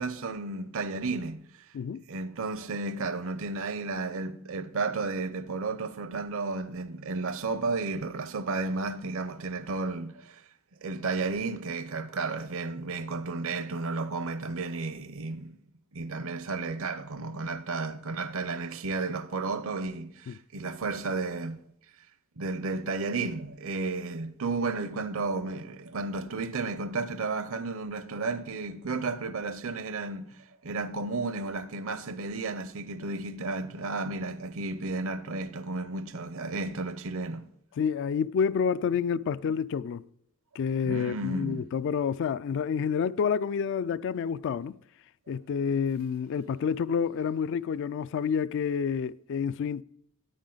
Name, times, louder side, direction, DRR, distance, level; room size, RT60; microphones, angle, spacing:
voice 1, 0.0-1.5 2.1-10.4 10.8-15.6 15.9-21.6 22.4-37.5 40.8-41.7, right 3 dB, 70° right, 0.7 m, -33 dB
voice 2, 37.8-40.0 40.6-44.8 45.3-49.8, left 6 dB, 60° left, 0.3 m, -29 dB
9.4 x 8.8 x 3.9 m
head